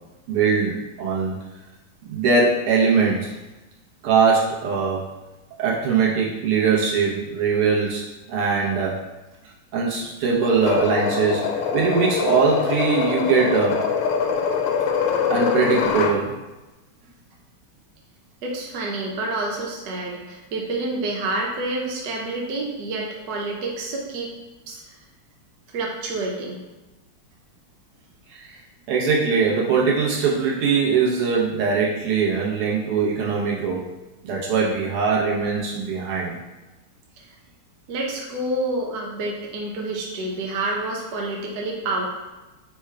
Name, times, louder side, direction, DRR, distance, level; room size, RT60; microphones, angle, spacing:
voice 1, 0.3-1.4 2.1-3.3 4.0-5.1 5.6-9.0 9.7-11.4 11.7-13.8 15.3-16.4 28.3-28.6 28.9-33.9 34.2-36.4, right 5 dB, 90° right, -5 dB, 1.9 m, -21 dB
sound 1, 10.4-16.2, left 6 dB, 85° left, 1.4 m, -23 dB
voice 2, 18.4-24.3 24.7-24.9 25.7-26.6 37.2-37.3 37.9-42.0, right 2 dB, 60° right, -1 dB, 1.1 m, -28 dB
4.4 x 2.2 x 4.7 m, 1.1 s
omnidirectional pair, 2.3 m